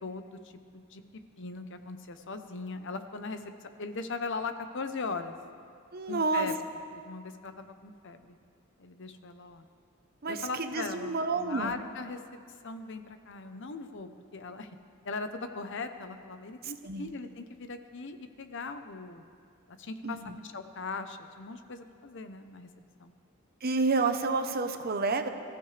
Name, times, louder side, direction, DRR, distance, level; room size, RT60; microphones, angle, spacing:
voice 1, 0.0-1.0 1.4-5.4 6.1-6.5 7.0-8.4 8.8-9.6 10.3-12.2 12.6-14.8 15.0-19.2 19.7-20.2 20.4-22.7 23.0-23.1, left 4 dB, 60° left, 8 dB, 0.8 m, -39 dB
voice 2, 5.9-6.5 10.2-11.7 16.6-17.1 20.0-20.4 23.6-25.3, right 3 dB, 50° right, 7 dB, 0.9 m, -29 dB
24.0 x 14.5 x 3.4 m, 2.3 s
head